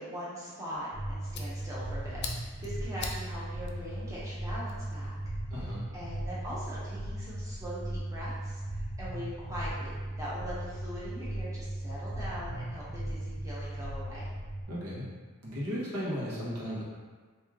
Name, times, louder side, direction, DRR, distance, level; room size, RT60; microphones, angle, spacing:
voice 1, 0.0-5.2 5.9-14.3, equal, 15° right, -9 dB, 0.8 m, -41 dB
Fire, 0.7-5.3, left 4 dB, 50° left, 0.4 m, -44 dB
sound 1, 0.9-14.6, right 1 dB, 15° left, 1.1 m, -37 dB
voice 2, 5.5-5.8 14.7-15.0 15.4-16.8, equal, 90° right, -7 dB, 1.2 m, -35 dB
3.1 x 2.7 x 3.6 m, 1.4 s
head